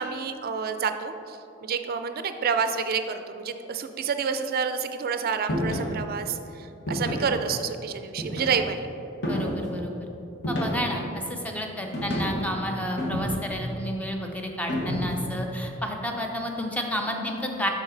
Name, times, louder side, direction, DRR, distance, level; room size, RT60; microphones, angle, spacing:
voice 1, 0.0-8.9, right 6 dB, 50° right, 9 dB, 0.4 m, -29 dB
sound 1, 5.5-5.9 6.9-7.4 8.2-8.7 9.2-9.7 10.4-11.0 11.9-12.5 13.0-13.6 14.7-15.3, equal, 55° left, 1.3 m, -29 dB
voice 2, 9.2-9.9 10.5-17.7, equal, 5° left, 2 dB, 0.6 m, -31 dB
7.0 x 5.8 x 3.9 m, 2.9 s
head